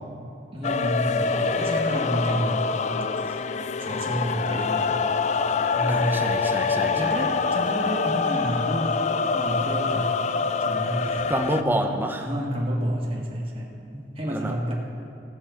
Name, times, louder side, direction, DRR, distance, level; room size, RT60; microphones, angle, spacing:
voice 1, 0.5-2.8 3.9-4.9 5.7-6.3 7.0-8.9 9.3-10.1 10.6-11.2 12.2-13.7 14.2-14.7, equal, 30° right, -2 dB, 1.7 m, -29 dB
sound 1, 0.6-11.6, left 5 dB, 40° left, 0.3 m, -25 dB
voice 2, 5.9-7.1 11.3-12.2 13.9-14.5, right 1 dB, 10° right, 4 dB, 0.8 m, -28 dB
16.5 x 5.4 x 7.1 m, 2.9 s
head